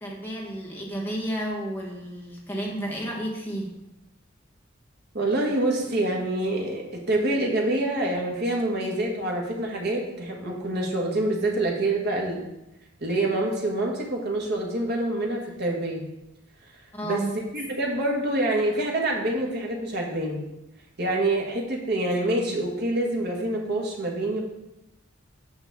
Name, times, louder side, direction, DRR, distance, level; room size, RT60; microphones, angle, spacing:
voice 1, 0.0-3.7 16.9-17.4, right 1 dB, 10° left, -2 dB, 1.2 m, -32 dB
voice 2, 5.1-12.4 13.0-16.1 17.0-17.2 17.5-20.4 21.0-24.4, right 1 dB, 55° right, 0 dB, 1.6 m, -26 dB
8.9 x 5.4 x 3.6 m, 0.93 s
head